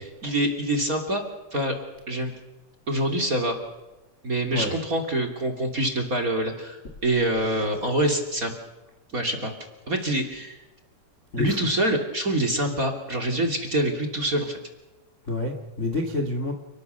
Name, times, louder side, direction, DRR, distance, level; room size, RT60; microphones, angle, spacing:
voice 1, 0.2-1.2 1.5-1.8 2.1-2.3 2.9-3.6 4.2-8.5 9.1-9.5 9.9-10.6 11.4-14.6, right 1 dB, 25° right, 6 dB, 2.5 m, -25 dB
voice 2, 15.3-16.5, left 2 dB, 40° left, 4 dB, 0.9 m, -28 dB
30.0 x 20.0 x 6.9 m, 1.1 s
omnidirectional pair, 5.2 m